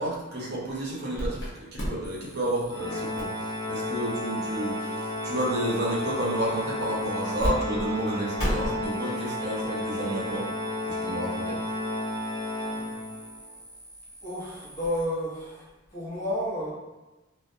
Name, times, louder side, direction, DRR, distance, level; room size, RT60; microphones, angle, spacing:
voice 1, 0.0-10.5 10.8-11.6, right 1 dB, 50° right, -5 dB, 0.6 m, -31 dB
sound 1, 1.1-1.5 1.8-7.5 7.8-7.9 8.4-15.0, equal, 60° left, 0.8 m, -38 dB
Organ, 2.7-13.4, left 1 dB, 20° left, 0.4 m, -32 dB
voice 2, 14.2-15.6 15.9-16.7, equal, 35° left, -8 dB, 0.9 m, -31 dB
2.4 x 2.1 x 2.6 m, 1.1 s
head